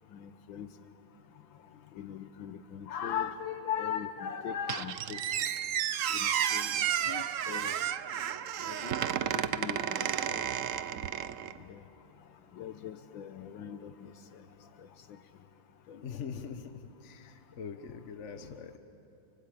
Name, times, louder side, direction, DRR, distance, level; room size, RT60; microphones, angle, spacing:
voice 1, 0.1-0.7 2.0-5.2 6.1-7.7 8.7-8.9 9.3-10.4 11.7-11.8 12.5-14.1 14.8-14.9 15.9-16.0, left 8 dB, 70° left, 9 dB, 1.6 m, -39 dB
Squeak, 4.7-11.6, right 9 dB, 75° right, 0.7 m, -32 dB
voice 2, 16.0-18.8, left 6 dB, 45° left, 7 dB, 1.0 m, -43 dB
25.5 x 24.5 x 8.6 m, 2.9 s
omnidirectional pair, 2.3 m